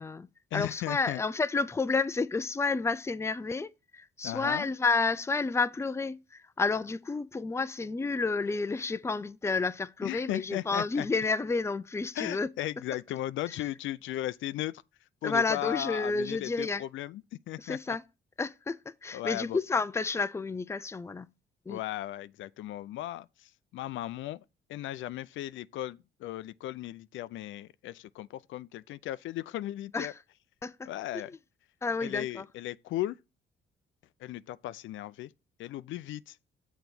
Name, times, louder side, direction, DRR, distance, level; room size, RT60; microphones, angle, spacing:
voice 1, 0.0-12.5 13.5-13.6 15.2-16.8 17.6-18.0 18.4-21.3 21.7-21.8 29.9-30.2 30.6-31.2 31.8-32.4, left 4 dB, 15° left, 0.5 m, -30 dB
voice 2, 0.5-1.2 4.2-4.7 10.0-11.1 12.1-14.8 15.2-17.2 17.5-18.0 19.1-19.6 21.7-24.4 24.7-30.1 30.9-31.3 32.0-33.2 34.2-35.3 35.6-36.4, left 14 dB, 80° left, 0.4 m, -36 dB
7.0 x 4.0 x 6.0 m
cardioid pair, 90°, 20 cm